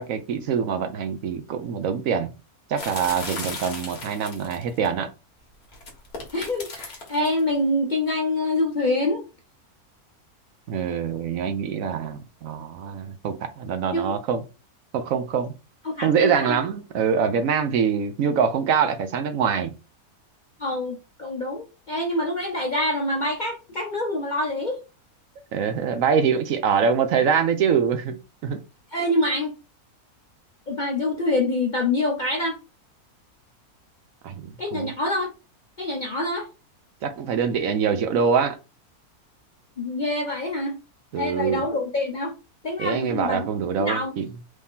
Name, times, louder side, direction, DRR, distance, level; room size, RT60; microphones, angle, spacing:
voice 1, 0.0-2.3 2.7-5.1 10.7-14.4 14.9-15.5 16.0-19.7 25.5-28.6 34.2-34.9 37.0-38.6 41.1-41.6 42.8-44.3, right 7 dB, 70° right, 1.0 m, -24 dB
sound 1, 2.8-4.9 5.7-7.4, left 3 dB, 90° left, 1.9 m, -36 dB
voice 2, 6.3-9.2 13.9-14.1 15.8-16.6 20.6-24.8 28.9-29.5 30.7-32.6 34.6-35.3 35.8-36.5 39.8-40.8 41.2-42.3 42.6-43.5 43.8-44.1, left 2 dB, 45° left, 0.6 m, -26 dB
4.8 x 2.8 x 3.5 m
omnidirectional pair, 1.6 m